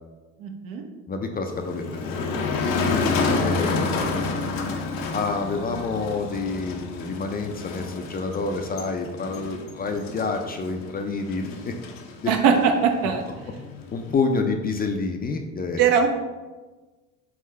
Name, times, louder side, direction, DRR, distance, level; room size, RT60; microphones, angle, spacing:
voice 1, 0.4-0.8 12.3-13.2 15.8-16.1, right 6 dB, 65° right, 4 dB, 0.8 m, -20 dB
voice 2, 1.1-2.6 3.4-4.3 5.1-11.8 12.2-12.3 13.0-13.1 13.9-16.1, left 4 dB, 25° left, 5 dB, 0.4 m, -28 dB
Motor vehicle (road), 1.5-14.1, left 4 dB, 65° left, 0.7 m, -29 dB
3.6 x 3.6 x 3.2 m, 1.2 s
supercardioid pair, 75°, 35 cm